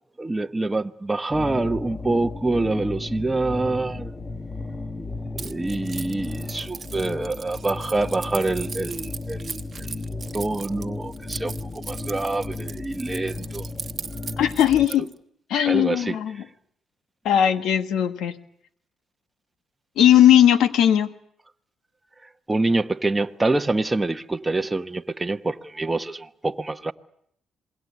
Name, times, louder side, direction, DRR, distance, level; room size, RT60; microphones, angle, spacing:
voice 1, 0.2-4.1 5.0-13.7 15.7-16.4 22.5-26.9, right 2 dB, 15° right, 0.9 m, -26 dB
sound 1, 1.3-14.9, left 3 dB, 25° left, 1.6 m, -34 dB
Keys jangling, 5.4-15.1, right 6 dB, 40° right, 1.1 m, -38 dB
voice 2, 14.4-15.1 15.5-16.4 17.2-18.3 20.0-21.1, left 10 dB, 80° left, 1.4 m, -18 dB
27.0 x 21.5 x 8.2 m
cardioid pair, 90°, 0 cm